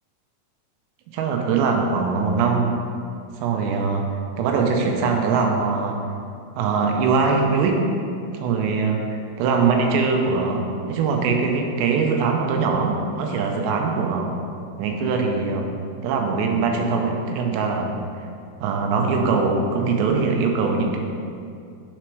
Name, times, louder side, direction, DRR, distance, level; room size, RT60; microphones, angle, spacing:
voice 1, 1.1-2.7 3.4-4.1 4.4-6.0 6.6-7.9 8.4-14.4 14.7-15.7 16.0-17.9 18.6-21.0, right 4 dB, 90° right, 2 dB, 2.9 m, -22 dB
6.1 x 4.5 x 4.5 m, 2.4 s
omnidirectional pair, 4.9 m